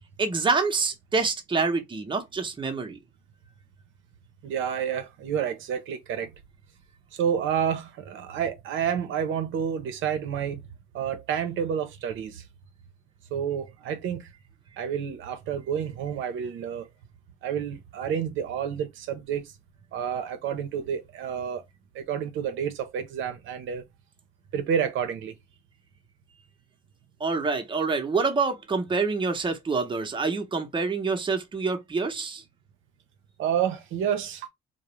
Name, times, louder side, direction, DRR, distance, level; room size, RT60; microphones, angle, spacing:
voice 1, 0.2-3.0 27.2-32.4, right 4 dB, 25° right, 0.6 m, -26 dB
voice 2, 4.4-6.3 7.1-10.6 10.9-12.4 13.3-14.3 14.8-16.9 17.4-19.5 19.9-21.6 21.9-23.8 24.5-25.3 33.4-34.5, right 8 dB, 80° right, 0.6 m, -29 dB
2.4 x 2.0 x 2.9 m
cardioid pair, 90°, 20 cm